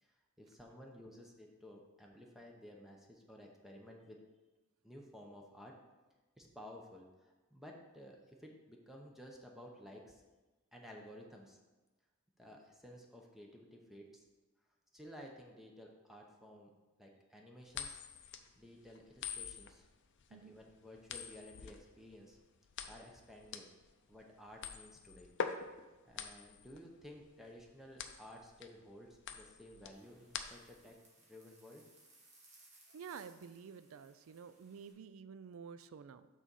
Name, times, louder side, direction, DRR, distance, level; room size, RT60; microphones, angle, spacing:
voice 1, 0.0-4.2 4.8-5.8 6.4-10.2 10.7-11.6 12.4-14.3 14.9-16.7 17.0-18.0 18.6-19.9 20.3-22.4 22.8-23.7 24.1-25.3 26.0-31.8, equal, ahead, 0 dB, 0.7 m, -54 dB
sound 1, 17.7-30.9, left 6 dB, 60° left, 0.5 m, -45 dB
sound 2, 29.9-34.9, right 2 dB, 35° right, 1.7 m, -65 dB
voice 2, 32.9-36.3, right 6 dB, 75° right, 14 dB, 0.4 m, -50 dB
6.1 x 4.0 x 6.1 m, 1.2 s
head